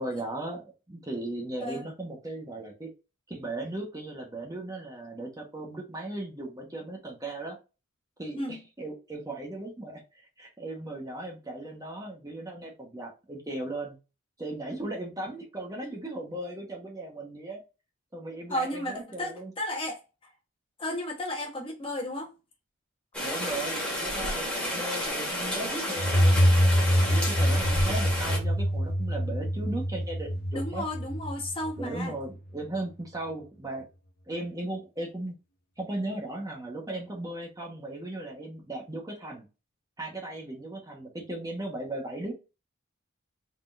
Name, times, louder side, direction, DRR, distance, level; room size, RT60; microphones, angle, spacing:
voice 1, 0.0-2.9 3.3-7.6 8.2-14.0 14.4-17.6 18.1-19.5 23.2-26.7 27.1-30.8 31.8-33.8 34.3-35.4 35.8-39.5 40.0-42.3, right 2 dB, 15° right, 1.1 m, -37 dB
voice 2, 18.5-20.0 20.8-22.3 30.5-32.1, left 1 dB, 25° left, 1.2 m, -33 dB
Rain, 23.1-28.4, equal, 5° left, 1.7 m, -31 dB
sound 1, 26.0-32.5, equal, 45° left, 0.8 m, -25 dB
3.9 x 3.8 x 2.6 m
head